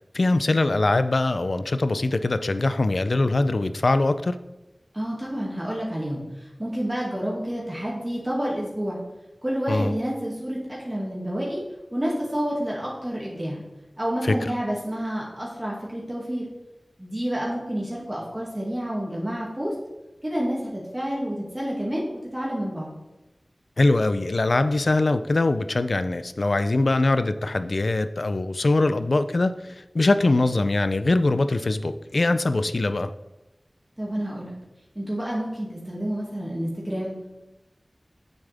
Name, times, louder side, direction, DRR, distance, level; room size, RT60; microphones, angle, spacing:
voice 1, 0.1-4.4 9.7-9.9 14.2-14.5 23.8-33.1, left 2 dB, 75° left, 12 dB, 0.4 m, -22 dB
voice 2, 4.9-9.0 9.4-11.6 11.9-13.6 14.0-16.5 17.0-19.7 20.2-22.9 34.0-34.5 35.0-37.1, equal, 20° right, -5 dB, 2.2 m, -29 dB
9.2 x 7.2 x 3.5 m, 1.0 s
wide cardioid pair, 55°, 0 cm